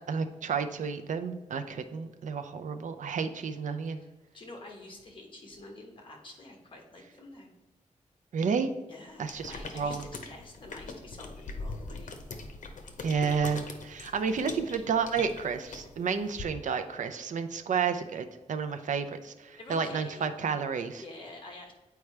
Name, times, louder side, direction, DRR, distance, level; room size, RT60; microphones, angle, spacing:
voice 1, 0.1-4.0 8.3-8.7 9.2-10.1 13.0-21.0, right 6 dB, 75° right, 8 dB, 0.5 m, -31 dB
voice 2, 3.9-7.5 8.9-12.1 14.0-14.2 19.6-20.3 21.0-21.7, left 2 dB, 40° left, 1 dB, 1.3 m, -48 dB
sound 1, 9.2-16.4, left 3 dB, 80° left, 0.8 m, -42 dB
8.3 x 4.6 x 3.3 m, 1.1 s
wide cardioid pair, 160°, 13 cm